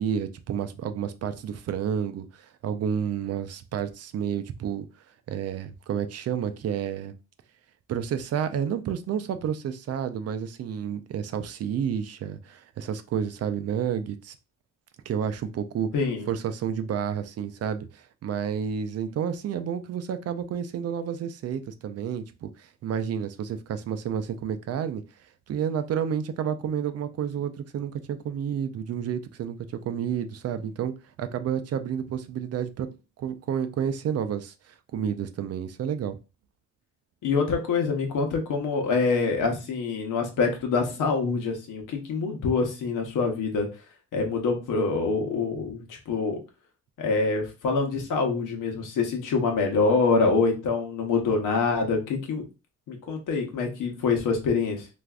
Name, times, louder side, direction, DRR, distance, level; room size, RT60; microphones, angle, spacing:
voice 1, 0.0-4.9 5.3-7.1 7.9-14.4 15.1-15.9 16.3-25.0 25.5-32.9 33.2-36.2, right 8 dB, 55° right, 0.4 m, -30 dB
voice 2, 15.9-16.3 37.2-43.7 44.1-46.4 47.0-52.4 52.9-54.9, left 4 dB, 85° left, 0.9 m, -25 dB
3.3 x 2.5 x 2.3 m
cardioid pair, 120°, 30 cm